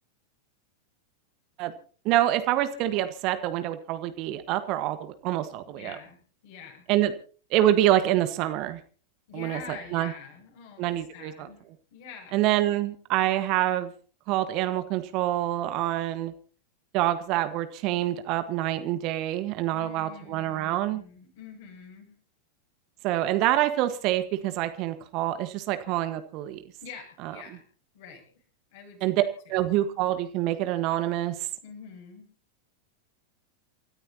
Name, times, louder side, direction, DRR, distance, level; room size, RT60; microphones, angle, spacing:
voice 1, 2.0-6.0 6.9-7.1 7.5-8.8 9.3-9.6 9.9-10.1 10.8-11.5 12.3-13.9 14.3-16.3 16.9-21.0 23.0-26.6 27.2-27.3 29.0-29.2 29.5-31.3, right 13 dB, 40° right, 11 dB, 1.5 m, -26 dB
voice 2, 5.6-6.9 9.3-12.4 19.7-22.2 26.8-27.7 27.9-28.4 28.7-29.7 31.6-32.3, left 6 dB, 50° left, 2 dB, 7.7 m, -46 dB
28.5 x 14.0 x 2.9 m, 0.40 s
figure-of-eight pair, 90°, 0 cm